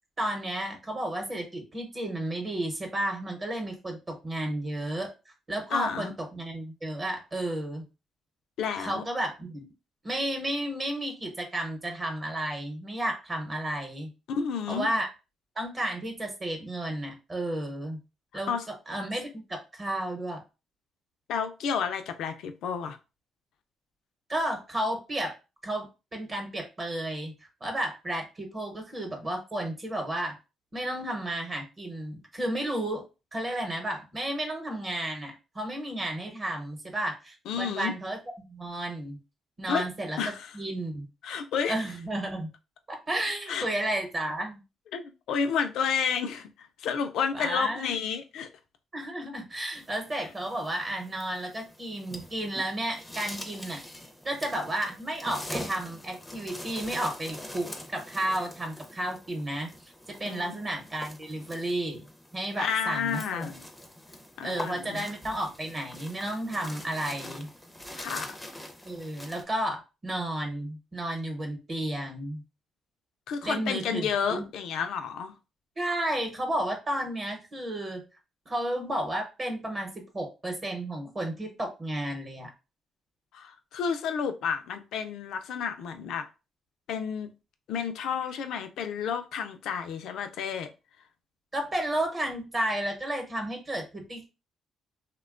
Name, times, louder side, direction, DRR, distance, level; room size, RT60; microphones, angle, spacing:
voice 1, 0.2-5.1 5.5-7.8 8.8-9.7 10.0-14.1 14.7-15.1 15.6-18.0 18.3-20.4 24.3-25.4 25.6-27.3 27.6-30.4 30.7-33.0 33.3-38.2 38.5-39.2 39.6-41.1 41.7-42.5 42.9-44.6 47.3-47.9 48.9-53.8 54.2-59.9 60.2-62.0 62.3-63.6 64.4-67.5 68.8-72.4 73.4-74.5 75.8-78.0 78.5-82.5 91.5-94.3, right 1 dB, 30° right, 0.9 m, -32 dB
voice 2, 5.7-6.1 8.6-9.0 14.3-14.9 18.5-18.7 21.3-23.0 37.5-38.0 39.7-39.8 40.2-40.5 41.2-41.7 43.5-43.7 44.9-48.5 60.3-60.6 62.6-63.5 64.4-65.1 67.9-68.4 73.3-75.3 83.3-86.3 86.9-87.3 87.7-90.7, left 7 dB, 80° left, 0.4 m, -31 dB
sound 1, 49.7-69.4, left 1 dB, 5° left, 0.5 m, -44 dB
2.9 x 2.2 x 2.4 m
cardioid pair, 90°, 0 cm